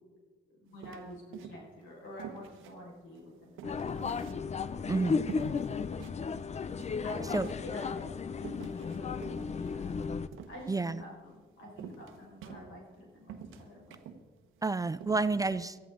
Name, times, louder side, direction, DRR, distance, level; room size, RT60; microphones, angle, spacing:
voice 1, 0.6-5.0 7.0-9.9 10.5-14.0, equal, 85° left, -2 dB, 5.1 m, -48 dB
sound 1, 0.8-1.8 2.2-4.8 5.3-6.2 6.5-6.6 6.8-7.7 8.4-11.0 11.8-13.0 13.3-14.2 14.6-14.7 15.0-15.3, right 7 dB, 90° right, 1.1 m, -47 dB
sound 2, 3.6-10.3, left 5 dB, 35° left, 0.6 m, -34 dB
voice 2, 4.9-5.2 7.3-7.5 10.7-11.0 14.6-15.8, right 3 dB, 15° right, 14 dB, 0.4 m, -30 dB
19.0 x 13.0 x 3.8 m, 1.5 s
cardioid pair, 90°, 20 cm